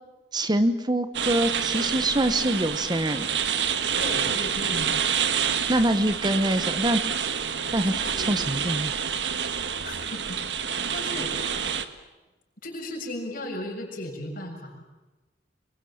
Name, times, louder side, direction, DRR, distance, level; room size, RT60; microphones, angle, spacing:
voice 1, 0.3-3.3 5.7-7.0 7.7-8.9, right 1 dB, 25° right, 11 dB, 1.1 m, -25 dB
sound 1, 1.1-11.8, right 7 dB, 75° right, 1.6 m, -28 dB
voice 2, 3.9-4.9 7.9-8.5 9.5-11.4 12.6-14.8, left 1 dB, 55° left, 1 dB, 7.1 m, -36 dB
26.0 x 23.0 x 8.7 m, 1.1 s
head